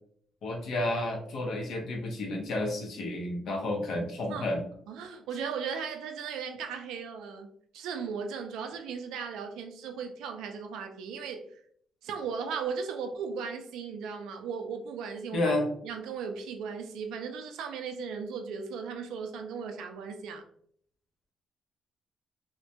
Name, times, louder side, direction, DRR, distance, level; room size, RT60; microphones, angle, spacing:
voice 1, 0.4-4.6 15.3-15.6, left 1 dB, 70° left, 1 dB, 0.5 m, -31 dB
voice 2, 4.9-11.6 12.0-15.5 15.8-20.4, right 6 dB, 90° right, 5 dB, 0.3 m, -37 dB
2.1 x 2.1 x 2.7 m, 0.62 s
cardioid pair, 90°, 0 cm